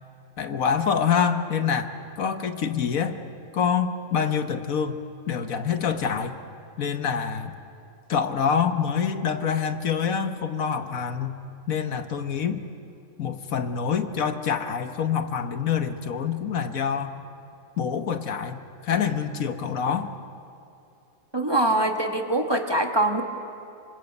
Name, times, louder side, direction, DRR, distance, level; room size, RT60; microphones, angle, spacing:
voice 1, 0.4-1.9 2.2-3.2 3.5-5.0 5.3-6.4 6.8-7.6 8.1-11.4 11.7-12.6 13.2-17.1 17.8-20.1, left 7 dB, 70° left, 8 dB, 1.5 m, -26 dB
voice 2, 21.3-23.2, right 1 dB, 20° right, 4 dB, 1.4 m, -23 dB
26.5 x 25.0 x 8.2 m, 2.6 s
omnidirectional pair, 1.5 m